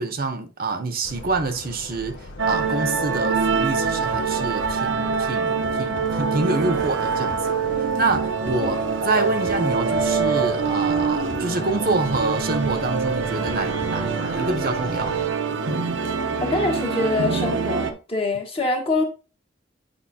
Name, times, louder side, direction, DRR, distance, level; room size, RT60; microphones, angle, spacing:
voice 1, 0.0-7.4 7.8-8.8 9.0-15.1, right 3 dB, 50° right, 0.8 m, -26 dB
sound 1, 1.0-15.3, left 3 dB, 80° left, 0.7 m, -39 dB
sound 2, 2.4-17.9, right 5 dB, 80° right, 0.8 m, -24 dB
sound 3, 4.1-14.2 14.5-14.6, equal, 5° left, 0.8 m, -44 dB
voice 2, 8.6-9.5 16.4-19.0, left 3 dB, 30° left, 1.4 m, -25 dB
8.5 x 5.1 x 2.8 m
head